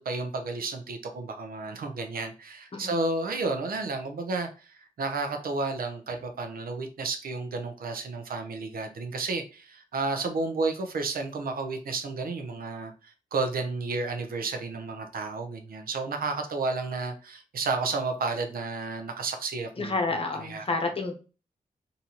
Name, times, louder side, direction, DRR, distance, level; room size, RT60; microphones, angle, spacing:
voice 1, 0.0-19.9 20.4-20.6, right 3 dB, 80° right, 0.7 m, -32 dB
voice 2, 19.8-21.1, left 3 dB, 40° left, 0.8 m, -29 dB
3.9 x 2.7 x 2.9 m
wide cardioid pair, 145°, 15 cm